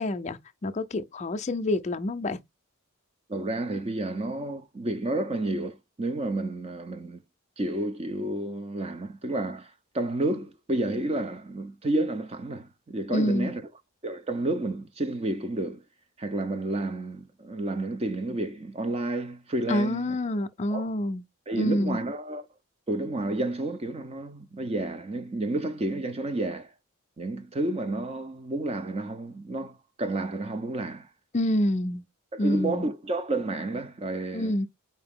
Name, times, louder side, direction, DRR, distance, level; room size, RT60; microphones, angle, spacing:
voice 1, 0.0-2.4 13.1-13.5 19.7-21.2 21.6-22.0 31.3-32.0 32.4-32.9 34.3-34.7, left 1 dB, 30° left, 0.4 m, -27 dB
voice 2, 3.3-7.2 7.6-9.7 9.9-13.6 14.0-15.8 16.2-20.1 20.7-20.9 21.5-22.4 22.9-26.7 27.2-31.1 32.3-34.5, right 2 dB, 30° right, 0.5 m, -30 dB
4.7 x 2.8 x 3.5 m
head